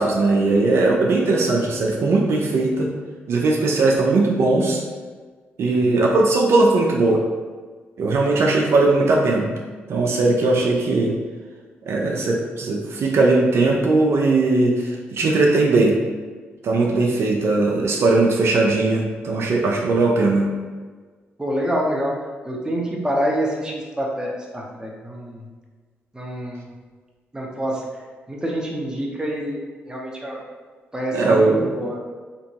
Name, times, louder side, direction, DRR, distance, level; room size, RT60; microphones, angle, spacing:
voice 1, 0.0-2.9 3.3-4.8 5.6-7.2 8.0-9.5 9.9-11.2 11.9-15.9 16.6-20.5 31.1-31.7, right 2 dB, 65° right, -1 dB, 0.5 m, -19 dB
voice 2, 5.7-6.0 21.4-22.1 22.4-25.5 26.1-26.7 27.3-27.8 28.3-30.4 30.9-32.0, equal, 15° right, -2 dB, 0.8 m, -27 dB
3.4 x 2.9 x 2.8 m, 1.4 s
cardioid pair, 65°, 5 cm